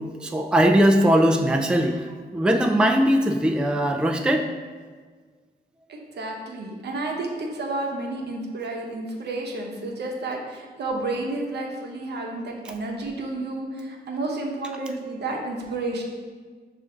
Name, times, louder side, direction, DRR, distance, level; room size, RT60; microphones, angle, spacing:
voice 1, 0.2-4.5, equal, 5° right, 3 dB, 0.3 m, -20 dB
voice 2, 5.9-16.0, right 2 dB, 75° right, 0 dB, 0.8 m, -31 dB
5.5 x 2.5 x 3.8 m, 1.5 s
cardioid pair, 80°, 17 cm